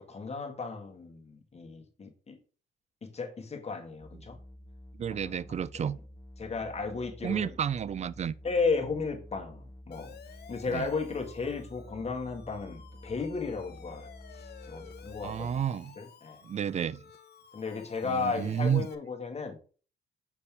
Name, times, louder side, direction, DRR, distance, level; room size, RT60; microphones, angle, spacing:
voice 1, 0.1-2.4 3.0-4.4 5.1-5.3 6.4-7.5 8.4-10.1 10.5-14.1 14.3-15.5 16.0-16.4 17.5-19.6, left 4 dB, 30° left, 1.7 m, -34 dB
sound 1, 4.0-15.6, equal, 10° left, 0.7 m, -49 dB
voice 2, 5.0-6.0 7.2-8.3 10.7-10.9 15.2-16.0 16.4-17.0 18.0-18.9, right 8 dB, 35° right, 0.4 m, -31 dB
Siren, 9.9-18.9, left 8 dB, 55° left, 0.8 m, -53 dB
7.1 x 4.1 x 3.4 m
cardioid pair, 90°, 20 cm